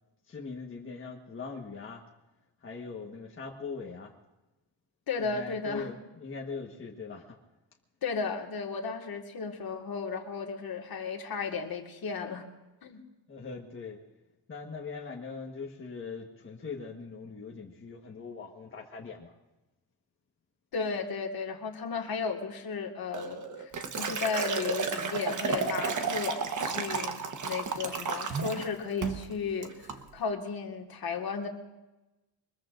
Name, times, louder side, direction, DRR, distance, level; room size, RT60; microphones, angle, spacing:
voice 1, 0.3-2.0 2.6-4.1 5.2-7.4 13.3-14.0 14.5-19.3, left 4 dB, 25° left, -1 dB, 1.4 m, -41 dB
voice 2, 5.1-5.9 8.0-12.5 12.8-13.0 20.7-31.5, left 5 dB, 50° left, 3 dB, 1.9 m, -34 dB
Liquid, 23.1-28.7 29.0-29.3 29.6-30.0, right 5 dB, 40° right, 1.2 m, -32 dB
24.0 x 21.0 x 2.6 m, 1.0 s
cardioid pair, 140°, 45 cm